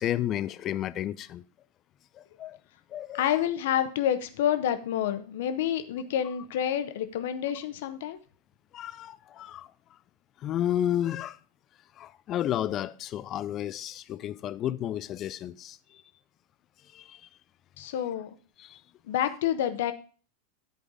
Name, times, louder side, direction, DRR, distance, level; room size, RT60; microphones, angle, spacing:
voice 1, 0.0-1.4 2.1-2.6 2.9-3.3 8.7-9.7 10.4-11.4 12.0-16.0 16.9-17.3 18.6-18.8, left 11 dB, 30° left, 0.5 m, -32 dB
voice 2, 3.1-8.2 17.8-18.4 19.1-19.9, left 10 dB, 55° left, 1.1 m, -28 dB
11.5 x 5.1 x 5.0 m
figure-of-eight pair, 90°, 0 cm